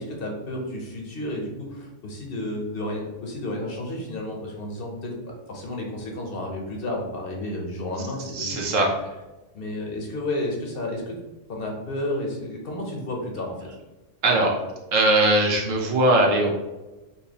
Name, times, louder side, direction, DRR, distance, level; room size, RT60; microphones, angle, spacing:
voice 1, 0.0-8.6 9.5-11.2 11.5-13.6, left 1 dB, 55° left, 0 dB, 0.8 m, -31 dB
voice 2, 8.3-8.9 14.2-14.6 14.9-16.5, right 2 dB, 85° right, -1 dB, 1.2 m, -20 dB
4.4 x 2.7 x 2.8 m, 1.1 s
omnidirectional pair, 1.3 m